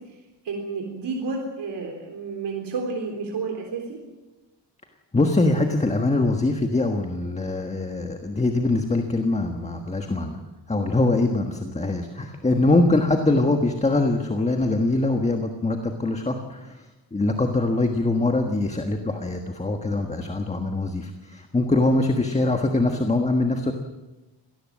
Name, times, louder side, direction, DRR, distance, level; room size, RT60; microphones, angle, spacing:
voice 1, 0.4-4.0 22.4-22.5, right 4 dB, 70° right, 1 dB, 3.8 m, -31 dB
voice 2, 5.1-10.4 10.7-16.8 17.1-23.7, left 2 dB, 15° left, 4 dB, 1.5 m, -23 dB
26.0 x 18.5 x 7.6 m, 1.1 s
wide cardioid pair, 165°, 43 cm